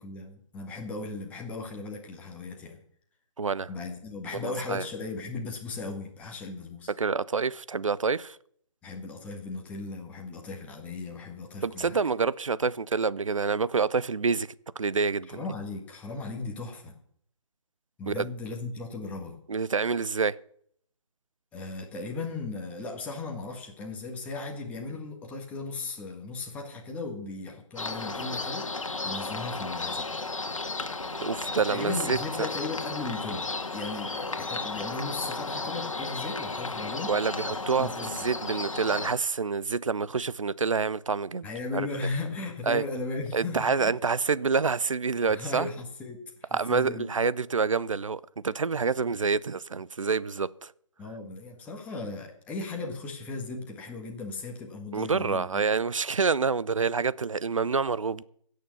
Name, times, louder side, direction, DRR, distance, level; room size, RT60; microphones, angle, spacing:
voice 1, 0.0-2.8 3.7-6.9 8.8-12.0 15.3-17.0 18.0-19.4 21.5-30.1 31.7-33.5 33.7-37.1 37.7-38.1 41.4-43.9 45.3-47.1 51.0-55.6, left 3 dB, 10° left, 1.7 m, -37 dB
voice 2, 3.4-3.7 4.3-4.8 7.0-8.4 11.6-14.5 14.8-15.4 18.1-18.3 19.5-20.4 31.2-32.2 37.1-41.5 41.7-41.9 42.7-42.8 43.3-45.7 46.5-50.7 54.9-58.2, right 5 dB, 70° right, 0.7 m, -27 dB
sound 1, 27.8-39.1, left 3 dB, 75° left, 1.7 m, -34 dB
17.0 x 6.7 x 7.0 m
figure-of-eight pair, 145°, 17 cm